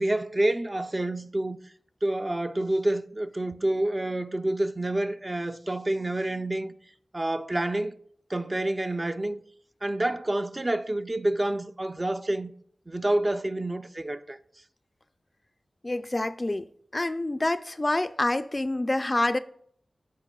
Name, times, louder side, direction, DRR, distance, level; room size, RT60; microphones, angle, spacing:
voice 1, 0.0-1.6 2.0-6.7 7.1-8.0 8.3-9.4 9.8-12.5 12.9-14.4, right 1 dB, 30° right, 0.5 m, -28 dB
voice 2, 15.8-19.4, left 2 dB, 35° left, 0.4 m, -27 dB
13.0 x 4.5 x 2.3 m
cardioid pair, 45°, 0 cm